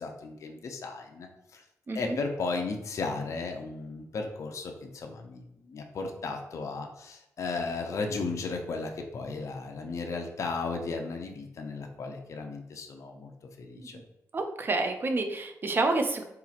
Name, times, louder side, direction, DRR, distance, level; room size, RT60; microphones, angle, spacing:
voice 1, 0.0-1.6 1.9-13.3 13.6-14.0, left 4 dB, 55° left, 3 dB, 0.4 m, -35 dB
voice 2, 14.3-16.2, right 3 dB, 35° right, 6 dB, 0.4 m, -29 dB
3.8 x 2.8 x 2.4 m, 0.85 s
cardioid pair, 100°, 6 cm